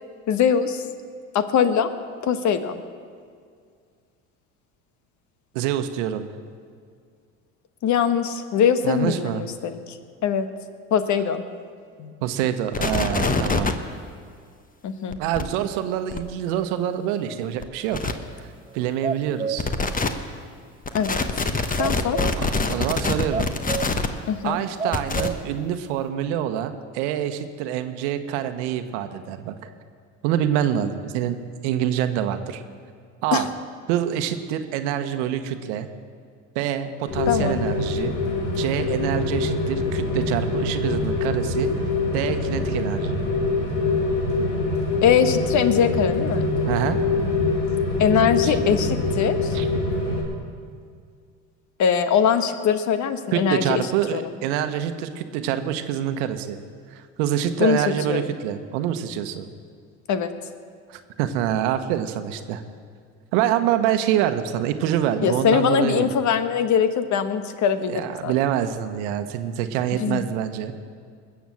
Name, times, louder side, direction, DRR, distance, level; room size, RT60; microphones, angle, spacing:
voice 1, 0.3-0.8 1.3-1.9 2.2-2.8 7.8-10.0 10.2-10.5 10.9-11.4 12.0-12.1 14.8-15.2 20.9-21.2 21.8-22.3 24.3-24.6 33.3-33.5 37.3-37.6 45.0-46.5 48.0-49.6 51.8-53.8 54.1-54.2 57.6-57.8 58.1-58.3 60.1-60.3 65.2-68.3 70.0-70.2, left 7 dB, 55° left, 10 dB, 1.2 m, -22 dB
voice 2, 5.5-6.2 8.8-9.4 12.2-13.7 15.2-18.1 18.4-18.5 18.7-19.7 22.4-23.5 24.4-29.7 30.2-31.4 31.6-32.6 33.2-33.5 33.9-35.9 36.5-38.1 38.5-41.7 42.1-43.2 46.6-47.0 48.4-48.6 49.5-49.7 53.3-56.6 56.9-59.4 60.9-62.6 63.3-66.1 67.9-70.7, right 10 dB, 80° right, 9 dB, 1.1 m, -26 dB
sound 1, 12.7-13.7 15.1-15.4 16.1-16.2 17.6-17.7 17.9-18.1 19.6-20.1 20.8-24.1 24.9-25.3, left 4 dB, 25° left, 1.2 m, -24 dB
sound 2, 18.7-19.7 20.1-20.2 21.8-22.5 23.3-24.1 24.4-24.5 24.8-25.6 25.9-26.0, right 5 dB, 15° right, 0.5 m, -30 dB
Rain, 37.1-50.2, left 3 dB, 90° left, 2.9 m, -24 dB
20.5 x 7.2 x 7.6 m, 2.2 s
hypercardioid pair, 75°, 35 cm